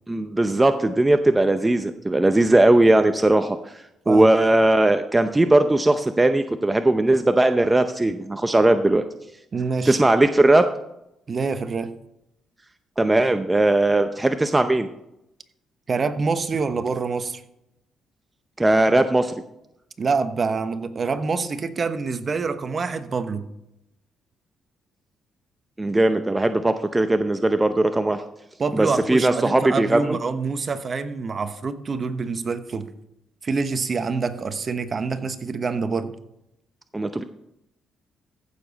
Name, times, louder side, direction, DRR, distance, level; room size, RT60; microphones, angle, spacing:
voice 1, 0.1-9.0 9.9-10.7 13.0-14.9 18.6-19.3 25.8-28.2 28.7-30.2 36.9-37.2, right 2 dB, 15° right, 8 dB, 0.6 m, -19 dB
voice 2, 9.5-10.0 11.3-11.9 15.9-17.4 20.0-23.5 28.6-32.9 33.4-36.1, right 4 dB, 40° right, 11 dB, 1.0 m, -26 dB
15.0 x 7.0 x 4.1 m, 0.85 s
cardioid pair, 90°, 0 cm